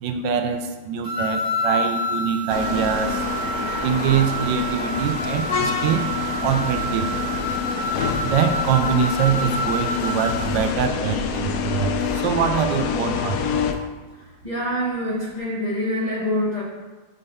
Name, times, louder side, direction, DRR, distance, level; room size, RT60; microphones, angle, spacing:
voice 1, 0.0-3.2 3.8-6.1 6.4-7.1 8.2-13.7, right 7 dB, 85° right, 7 dB, 1.3 m, -24 dB
sound 1, 1.0-10.6, right 1 dB, 35° right, 1.3 m, -28 dB
sound 2, 2.5-13.7, left 6 dB, 70° left, 1.0 m, -27 dB
voice 2, 14.4-16.6, equal, 25° left, -6 dB, 1.3 m, -25 dB
5.5 x 4.0 x 5.4 m, 1.3 s
omnidirectional pair, 2.0 m